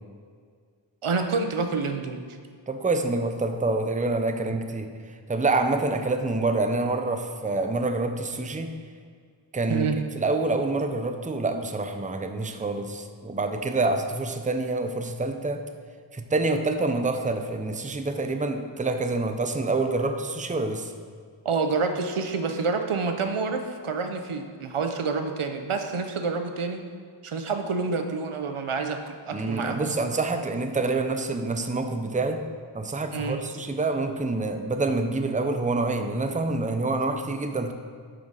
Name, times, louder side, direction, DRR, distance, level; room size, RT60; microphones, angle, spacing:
voice 1, 1.0-2.2 9.7-10.0 21.4-26.9 27.2-29.9 33.1-33.4, right 4 dB, 80° right, 6 dB, 0.7 m, -28 dB
voice 2, 2.7-8.8 9.5-9.9 10.2-15.6 16.1-20.9 29.3-32.4 32.7-37.7, right 3 dB, 15° right, 6 dB, 0.6 m, -27 dB
7.7 x 4.9 x 5.3 m, 2.1 s
wide cardioid pair, 45°, 49 cm